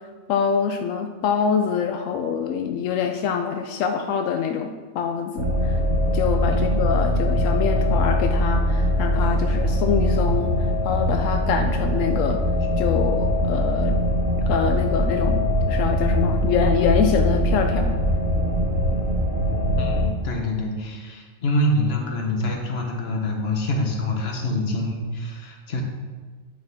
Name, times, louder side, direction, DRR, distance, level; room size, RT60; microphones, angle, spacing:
voice 1, 0.3-5.8 6.1-10.6 10.8-12.4 12.8-14.0 14.5-18.0, left 7 dB, 85° left, 5 dB, 1.0 m, -25 dB
sound 1, 5.4-20.0, equal, 50° right, 1.9 m, -22 dB
voice 2, 19.8-25.8, left 1 dB, 55° left, 2 dB, 1.3 m, -25 dB
8.8 x 6.5 x 3.6 m, 1.4 s
omnidirectional pair, 1.3 m